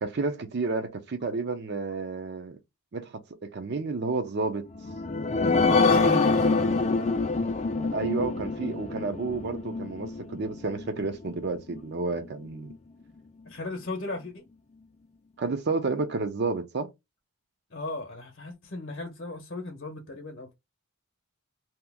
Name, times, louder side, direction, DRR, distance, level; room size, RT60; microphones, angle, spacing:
voice 1, 0.0-2.6 2.9-4.6 7.9-12.7 15.4-16.9, right 3 dB, 50° right, 0.5 m, -31 dB
sound 1, 4.7-11.8 12.3-12.4 12.7-12.8, left 3 dB, 30° left, 0.4 m, -26 dB
voice 2, 5.4-6.6 13.5-14.5 17.7-20.5, left 2 dB, 50° left, 0.8 m, -36 dB
2.8 x 2.4 x 3.4 m
head